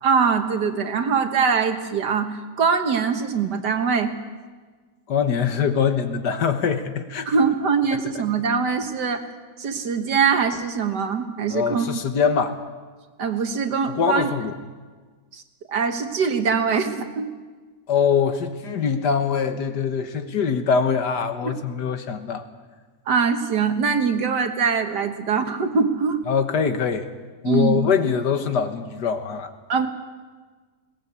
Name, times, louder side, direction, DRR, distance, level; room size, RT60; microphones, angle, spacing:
voice 1, 0.0-4.1 7.3-9.2 9.6-11.9 13.2-14.3 15.3-15.4 15.7-17.3 21.4-21.5 23.1-26.2 27.4-27.8 29.7-29.9, right 5 dB, 70° right, 7 dB, 2.0 m, -22 dB
voice 2, 5.1-7.3 11.5-12.6 14.0-14.5 17.9-22.4 26.3-27.1 27.4-29.5, left 6 dB, 70° left, 8 dB, 1.9 m, -23 dB
21.0 x 18.5 x 8.3 m, 1.4 s
omnidirectional pair, 1.9 m